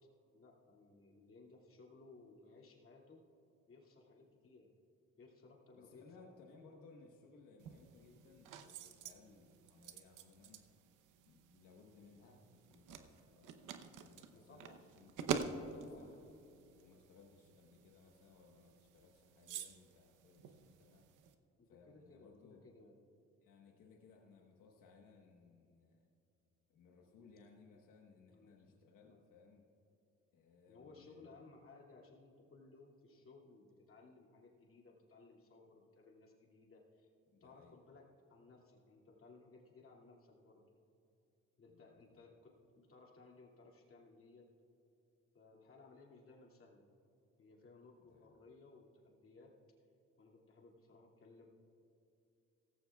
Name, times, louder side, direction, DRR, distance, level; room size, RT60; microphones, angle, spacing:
voice 1, 0.3-3.2 3.7-4.7 5.2-6.0 14.3-14.8 15.6-16.2 21.6-23.0 28.3-29.2 30.7-37.1 37.4-38.0 38.3-40.7 41.6-44.5 45.3-46.9 47.4-49.5 50.2-51.5, left 3 dB, 45° left, -2 dB, 2.5 m, -61 dB
voice 2, 5.8-10.6 11.2-16.2 16.7-21.1 21.7-22.6 23.4-26.1 26.7-29.6 30.3-31.3 37.3-37.8 41.7-42.3 48.0-48.4, left 4 dB, 90° left, 0 dB, 1.3 m, -63 dB
sound 1, 7.6-21.4, right 6 dB, 85° right, 0.9 m, -48 dB
17.0 x 15.0 x 2.4 m, 2.8 s
cardioid pair, 90°, 30 cm